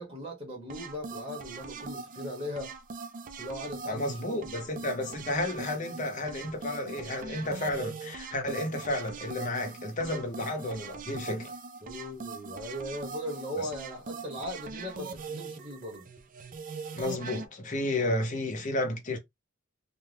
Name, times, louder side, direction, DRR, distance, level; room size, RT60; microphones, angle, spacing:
voice 1, 0.0-2.7 3.4-4.4 11.8-16.1, equal, 25° right, 1.0 m, -38 dB
sound 1, 0.7-17.5, right 4 dB, 40° right, 0.4 m, -41 dB
voice 2, 3.9-11.5 13.6-13.7 16.9-19.2, left 1 dB, 35° left, 0.8 m, -32 dB
2.6 x 2.2 x 3.2 m
head